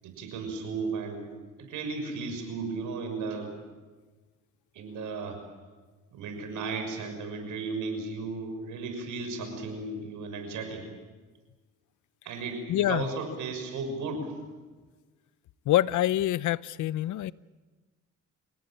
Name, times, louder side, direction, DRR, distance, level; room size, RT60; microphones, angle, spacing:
voice 1, 0.0-1.3 1.6-3.6 4.7-5.4 6.1-10.9 12.2-14.3, right 4 dB, 85° right, 6 dB, 6.2 m, -35 dB
voice 2, 12.7-13.1 15.7-17.3, left 13 dB, 75° left, 19 dB, 0.7 m, -26 dB
29.0 x 18.0 x 9.0 m, 1.3 s
cardioid pair, 90°, 30 cm